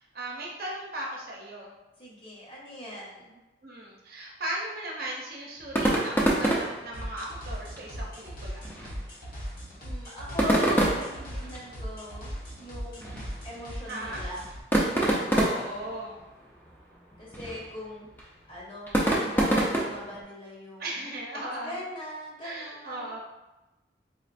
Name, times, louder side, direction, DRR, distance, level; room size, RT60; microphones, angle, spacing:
voice 1, 0.1-1.7 3.6-8.7 11.2-11.5 13.9-14.2 15.1-16.2 20.8-21.8 22.4-23.2, right 1 dB, 55° right, -2 dB, 0.7 m, -37 dB
voice 2, 2.0-3.4 9.8-14.5 17.2-18.1 18.5-20.9 21.6-23.2, equal, 30° left, -5 dB, 0.9 m, -40 dB
sound 1, 5.6-20.2, right 1 dB, 10° left, 0.5 m, -29 dB
sound 2, 6.9-14.6, equal, 55° left, 0.9 m, -39 dB
4.2 x 2.4 x 2.5 m, 1.0 s
head